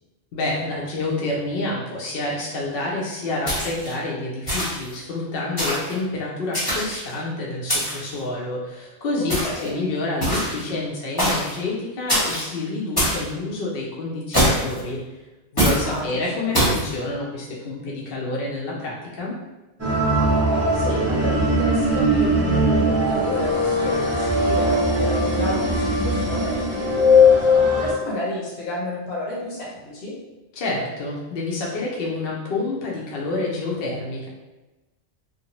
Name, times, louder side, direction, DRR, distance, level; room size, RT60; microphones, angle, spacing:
voice 1, 0.3-15.2 15.5-19.4 30.5-34.3, left 2 dB, 65° left, -4 dB, 0.7 m, -28 dB
sound 1, 3.5-3.9 4.5-4.9 5.6-5.9 6.5-7.1 7.7-8.1 9.3-9.7 10.2-10.6 11.2-11.5 12.1-12.5 13.0-13.2 14.3-14.8 15.6-15.8 16.5-16.8, equal, 20° left, 0.9 m, -22 dB
voice 2, 9.2-9.7 15.8-16.5 20.7-30.1, left 2 dB, 85° left, -5 dB, 1.0 m, -31 dB
sound 2, 19.8-27.9, left 1 dB, 20° right, 0.4 m, -19 dB
2.6 x 2.1 x 2.9 m, 1.1 s
omnidirectional pair, 1.1 m